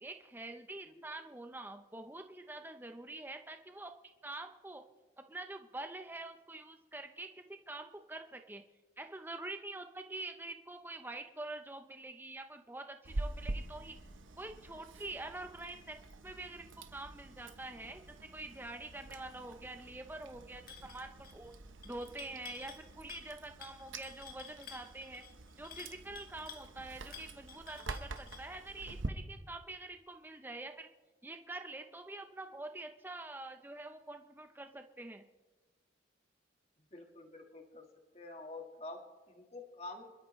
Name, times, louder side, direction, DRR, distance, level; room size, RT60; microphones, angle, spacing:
voice 1, 0.0-3.9 4.2-4.8 5.3-8.6 9.0-14.0 14.4-16.0 16.2-16.7 16.9-21.5 21.8-25.2 25.6-30.9 31.2-35.2, right 2 dB, 10° right, 6 dB, 0.7 m, -46 dB
Chewing mastication, 13.0-29.1, right 2 dB, 85° right, 1.0 m, -46 dB
sound 1, 20.7-21.0 21.2-21.5 21.8-22.8 23.1-23.3 23.6-26.7 27.1-28.5, left 6 dB, 50° left, 1.8 m, -51 dB
voice 2, 36.9-37.9 38.1-40.2, left 2 dB, 35° left, 3 dB, 1.6 m, -48 dB
26.5 x 12.5 x 3.2 m, 1.3 s
head